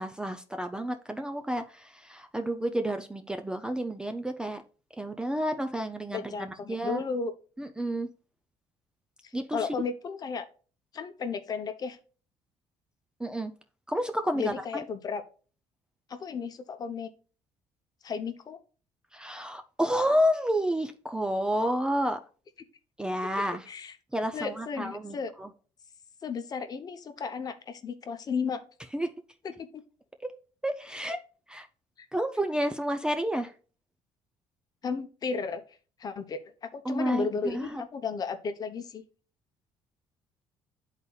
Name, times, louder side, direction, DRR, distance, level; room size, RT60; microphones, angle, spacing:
voice 1, 0.0-4.6 5.0-7.0 7.6-8.1 9.3-9.7 13.2-13.5 13.9-14.8 19.1-22.2 23.0-23.7 24.1-25.5 28.9-29.1 30.2-30.3 30.6-31.2 31.5-31.7 32.1-33.5 36.9-37.8, equal, 10° right, 7 dB, 0.4 m, -30 dB
voice 2, 6.1-7.3 9.2-10.5 10.9-12.0 14.3-15.2 16.1-17.1 18.0-18.6 23.7-24.0 24.3-25.3 26.2-28.6 29.4-29.8 34.8-35.6 36.0-39.0, left 5 dB, 35° left, 8 dB, 0.7 m, -34 dB
11.0 x 4.1 x 2.3 m, 0.39 s
cardioid pair, 120°, 11 cm